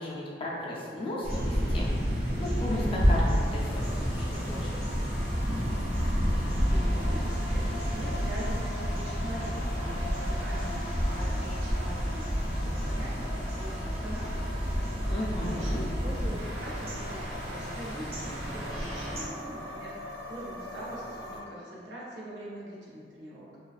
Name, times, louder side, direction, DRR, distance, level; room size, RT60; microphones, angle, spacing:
voice 1, 0.0-1.9 2.4-4.8 15.1-15.8, left 1 dB, 30° left, -5 dB, 0.4 m, -35 dB
sound 1, 1.2-19.2, equal, 35° right, 0.4 m, -30 dB
sound 2, 3.1-21.4, left 1 dB, 85° left, 0.5 m, -42 dB
voice 2, 6.3-23.5, right 1 dB, 90° right, -6 dB, 0.6 m, -43 dB
2.3 x 2.3 x 2.4 m, 2.2 s
head